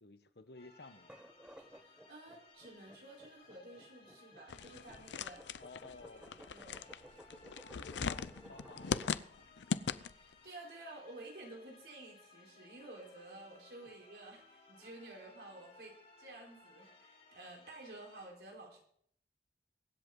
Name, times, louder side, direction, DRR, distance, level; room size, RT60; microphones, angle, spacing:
voice 1, 0.0-1.1 5.6-6.3 7.7-9.6, left 3 dB, 65° left, 10 dB, 1.1 m, -54 dB
sound 1, 0.5-18.2, left 3 dB, 35° left, 7.1 m, -62 dB
sound 2, 1.0-9.2, equal, 5° right, 0.8 m, -57 dB
voice 2, 1.6-5.4 6.1-6.9 10.1-18.8, right 2 dB, 70° right, -1 dB, 4.4 m, -52 dB
sound 3, 4.5-10.3, left 5 dB, 90° left, 0.5 m, -40 dB
23.5 x 8.1 x 3.9 m, 0.64 s
head